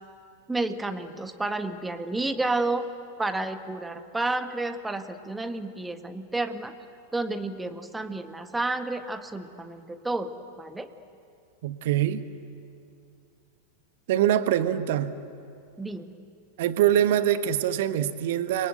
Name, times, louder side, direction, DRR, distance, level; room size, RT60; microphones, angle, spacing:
voice 1, 0.5-2.9 3.2-6.7 7.1-10.9 15.8-16.1, right 2 dB, 5° right, 8 dB, 1.6 m, -31 dB
voice 2, 11.6-12.2 14.1-15.1 16.6-18.7, right 11 dB, 55° right, 12 dB, 1.3 m, -24 dB
29.5 x 23.5 x 8.0 m, 2.5 s
figure-of-eight pair, 90°, 0 cm